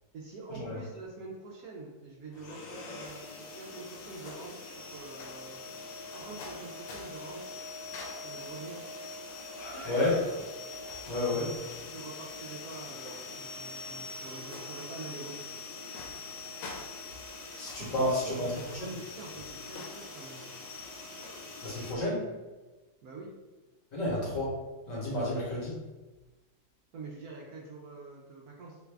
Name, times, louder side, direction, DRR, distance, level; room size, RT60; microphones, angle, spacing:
voice 1, 0.1-5.6 6.1-7.4 8.2-8.8 11.0-11.6 11.8-15.5 17.7-20.5 23.0-23.3 26.9-28.8, right 3 dB, 70° right, -3 dB, 0.8 m, -45 dB
sound 1, 2.3-21.9, left 3 dB, 80° left, 1.2 m, -43 dB
voice 2, 9.6-10.4 11.1-11.5 17.6-18.5 18.8-18.9 21.6-22.3 23.9-24.5 24.9-25.8, left 1 dB, 50° left, -5 dB, 1.2 m, -31 dB
3.2 x 2.4 x 3.3 m, 1.2 s
omnidirectional pair, 2.1 m